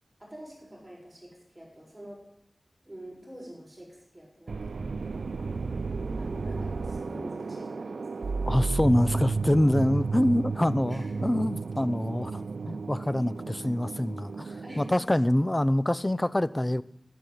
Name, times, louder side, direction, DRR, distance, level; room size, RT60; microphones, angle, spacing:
voice 1, 0.2-2.2 2.8-5.2 6.2-8.3 10.9-11.3 14.4-15.2, equal, 10° right, -3 dB, 7.1 m, -46 dB
sound 1, 4.5-14.9, right 4 dB, 90° right, 0.4 m, -33 dB
voice 2, 8.5-16.8, left 1 dB, 20° left, 17 dB, 0.5 m, -25 dB
12.0 x 11.5 x 8.3 m, 0.81 s
wide cardioid pair, 75°, 0 cm